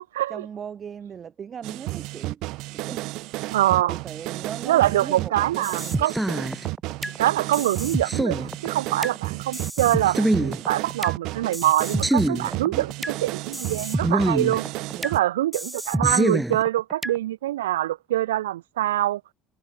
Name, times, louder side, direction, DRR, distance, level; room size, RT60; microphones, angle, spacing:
voice 1, 0.3-3.3 3.9-6.2 12.4-12.9 14.9-15.1, right 7 dB, 40° right, 3.5 m, -39 dB
sound 1, 1.6-15.2, right 20 dB, 65° right, 1.5 m, -32 dB
voice 2, 3.5-4.0 4.7-6.1 7.0-12.9 13.2-14.7 15.0-19.2, right 14 dB, 85° right, 0.5 m, -24 dB
sound 2, 5.6-7.2 7.5-9.2 9.5-11.2 11.5-13.2 13.5-15.2 15.5-17.2, right 1 dB, 5° right, 2.2 m, -26 dB
hypercardioid pair, 70°, 0 cm